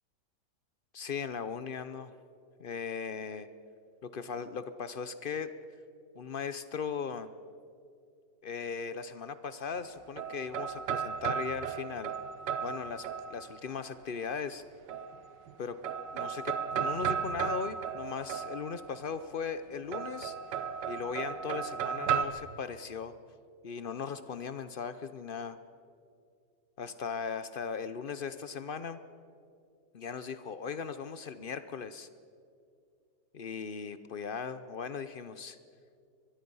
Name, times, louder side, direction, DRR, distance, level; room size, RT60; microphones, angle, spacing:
voice 1, 0.9-2.1 2.6-3.5 4.0-5.5 6.2-7.3 8.4-12.1 12.6-14.6 15.6-15.8 16.1-20.3 20.9-23.1 23.6-25.6 26.8-29.0 29.9-32.1 33.3-35.6, left 6 dB, 60° left, 12 dB, 0.5 m, -38 dB
sound 1, 9.7-13.7 14.9-15.5 15.8-19.0 19.9-22.2, right 7 dB, 90° right, 1.6 m, -35 dB
23.5 x 21.5 x 5.5 m, 2.3 s
omnidirectional pair, 1.8 m